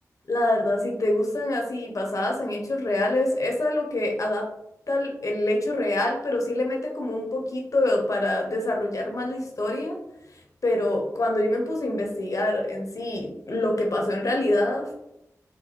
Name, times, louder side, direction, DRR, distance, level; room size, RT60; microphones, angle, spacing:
voice 1, 0.3-4.5 4.9-9.9 10.6-14.9, left 1 dB, 60° left, 0 dB, 1.0 m, -25 dB
4.5 x 2.2 x 4.2 m, 0.84 s
cardioid pair, 40°, 6 cm